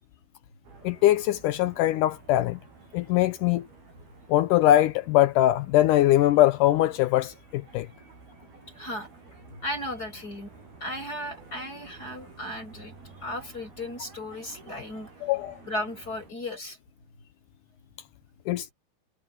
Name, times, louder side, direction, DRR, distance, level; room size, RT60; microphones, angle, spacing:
sound 1, 0.6-16.3, right 4 dB, 80° right, 9.0 m, -51 dB
voice 1, 0.8-2.6 2.9-3.7 4.3-7.9 15.2-15.6 18.5-18.7, left 14 dB, 85° left, 1.9 m, -22 dB
voice 2, 8.7-9.1 9.5-10.5 10.8-12.9 13.2-15.1 15.6-16.8, left 1 dB, 25° left, 8.3 m, -35 dB
omnidirectional pair, 4.4 m